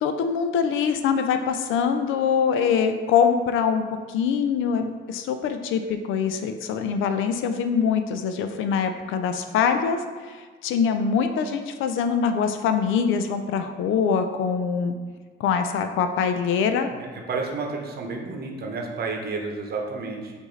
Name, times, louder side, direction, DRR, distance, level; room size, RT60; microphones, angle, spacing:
voice 1, 0.0-10.0 10.3-15.0 15.4-16.9, left 6 dB, 85° left, 8 dB, 0.4 m, -24 dB
voice 2, 16.9-20.3, right 3 dB, 50° right, 1 dB, 0.8 m, -31 dB
4.8 x 2.6 x 3.9 m, 1.4 s
cardioid pair, 90°, 20 cm